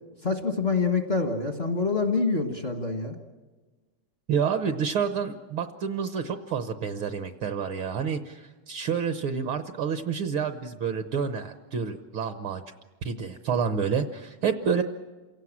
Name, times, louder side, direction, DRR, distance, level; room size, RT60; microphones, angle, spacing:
voice 1, 0.2-3.1, left 4 dB, 50° left, 4 dB, 0.7 m, -26 dB
voice 2, 4.3-12.6 13.0-14.8, right 6 dB, 70° right, 8 dB, 1.2 m, -29 dB
28.0 x 17.5 x 7.4 m, 1.3 s
omnidirectional pair, 3.5 m